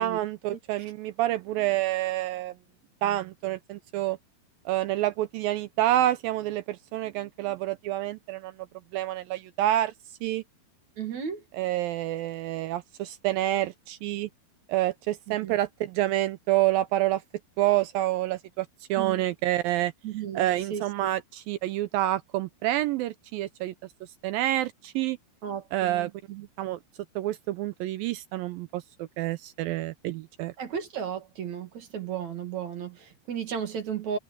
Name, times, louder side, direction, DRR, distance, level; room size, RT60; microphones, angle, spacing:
voice 1, 0.0-2.5 3.0-4.2 4.7-8.5 8.9-9.9 10.2-10.4 11.5-14.3 14.7-17.2 17.6-19.9 20.3-23.7 24.2-25.2 25.7-26.1 26.6-26.8 27.2-30.5, right 14 dB, 80° right, 2.2 m, -28 dB
voice 2, 11.0-11.4 15.3-15.6 19.0-19.2 20.0-21.1 25.4-26.5 30.6-34.2, right 8 dB, 50° right, 3.1 m, -35 dB
omnidirectional pair, 4.5 m